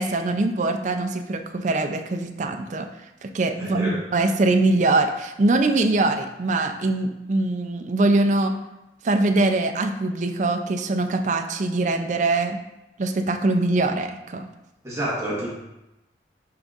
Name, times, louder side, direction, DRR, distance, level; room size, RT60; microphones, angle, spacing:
voice 1, 0.0-2.9 3.2-8.6 9.0-12.6 13.0-14.5, right 2 dB, 45° right, 6 dB, 0.4 m, -22 dB
voice 2, 3.6-4.0 14.8-15.5, right 1 dB, 15° right, -6 dB, 1.2 m, -28 dB
10.5 x 3.8 x 2.4 m, 0.95 s
head